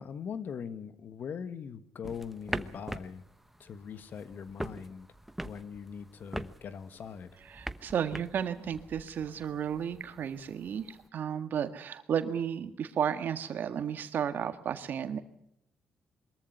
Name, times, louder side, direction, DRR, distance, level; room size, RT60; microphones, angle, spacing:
voice 1, 0.0-3.2 3.6-5.1 5.4-7.4, left 7 dB, 60° left, 12 dB, 1.5 m, -41 dB
sound 1, 2.0-11.1, right 1 dB, 5° right, 1.0 m, -43 dB
voice 2, 7.5-15.2, right 8 dB, 65° right, 9 dB, 1.7 m, -33 dB
22.5 x 14.0 x 9.6 m, 0.78 s
cardioid pair, 80°, 4 cm